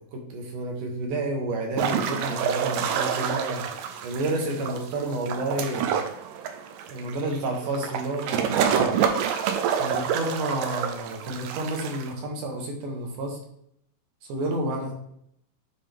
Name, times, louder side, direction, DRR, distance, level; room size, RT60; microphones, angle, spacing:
voice 1, 0.1-3.7 4.0-6.1 6.9-9.0 9.8-13.4 14.3-14.9, right 2 dB, 65° right, 1 dB, 2.5 m, -30 dB
sound 1, 1.8-12.1, right 8 dB, 80° right, 2.1 m, -27 dB
10.0 x 3.5 x 3.4 m, 0.72 s
omnidirectional pair, 4.4 m